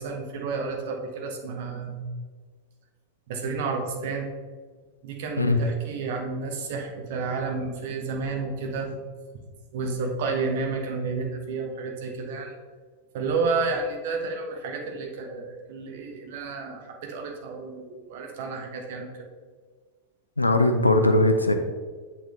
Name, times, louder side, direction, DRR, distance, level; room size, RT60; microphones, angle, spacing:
voice 1, 0.0-2.0 3.3-4.3 5.0-8.9 9.7-12.5 13.1-19.3, right 4 dB, 50° right, 2 dB, 1.1 m, -31 dB
voice 2, 20.4-21.5, left 2 dB, 85° left, 6 dB, 0.6 m, -20 dB
7.8 x 4.3 x 3.3 m, 1.5 s
figure-of-eight pair, 90°, 0 cm